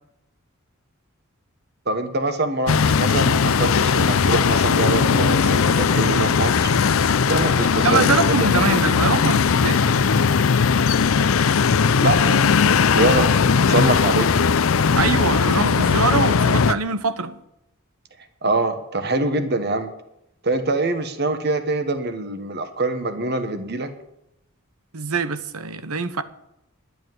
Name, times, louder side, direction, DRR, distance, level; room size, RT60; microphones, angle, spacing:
voice 1, 1.9-6.7 7.3-8.6 12.0-14.3 18.4-19.9 20.4-23.9, right 2 dB, 50° right, 1.3 m, -24 dB
sound 1, 2.7-16.7, left 6 dB, 70° left, 0.5 m, -18 dB
voice 2, 7.8-9.8 14.9-17.4 24.9-26.2, right 4 dB, 90° right, 1.0 m, -23 dB
11.5 x 8.5 x 9.2 m
head